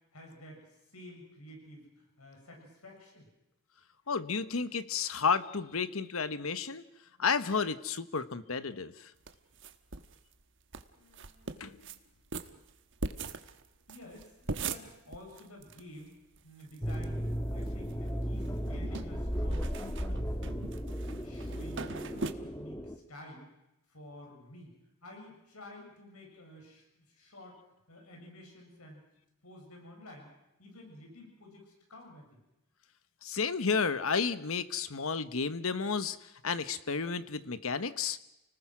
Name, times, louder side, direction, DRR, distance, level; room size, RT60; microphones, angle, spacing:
voice 1, 0.1-3.3 10.9-11.6 13.9-16.1 16.4-17.2 17.5-19.7 20.1-20.7 21.1-23.5 23.9-24.7 25.0-27.6 27.9-29.0 29.4-30.3 30.6-32.4, left 1 dB, 85° left, 1 dB, 7.2 m, -51 dB
voice 2, 4.1-6.8 7.2-9.1 11.6-11.8 33.2-36.2 36.4-38.2, left 5 dB, 70° left, 13 dB, 1.1 m, -32 dB
sound 1, 9.3-10.2 10.4-10.5 10.7-10.8 11.1-12.0 12.3-15.8 16.1-16.2 16.3-17.0 17.5-18.1 18.4-22.3, right 3 dB, 55° right, 1.3 m, -40 dB
sound 2, 16.8-23.0, equal, 15° left, 1.4 m, -35 dB
29.5 x 19.5 x 6.1 m, 0.93 s
head